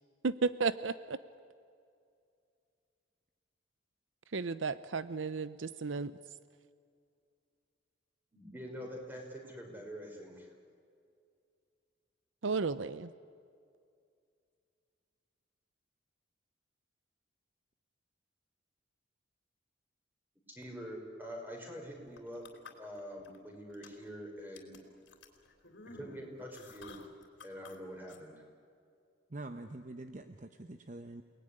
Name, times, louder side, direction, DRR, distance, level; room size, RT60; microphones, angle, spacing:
voice 1, 0.2-1.2 4.3-6.1 12.4-13.1, right 4 dB, 75° right, 15 dB, 0.7 m, -33 dB
voice 2, 8.3-10.5 20.5-22.4 22.8-24.8 26.0-27.0 27.4-28.4, equal, 10° right, 1 dB, 5.1 m, -45 dB
sound 1, 22.1-23.4 23.7-24.1 24.6-27.8 28.1-28.2, left 4 dB, 65° left, 3.4 m, -52 dB
voice 3, 29.3-31.2, right 2 dB, 40° right, 8 dB, 0.9 m, -45 dB
29.0 x 19.5 x 10.0 m, 2.3 s
head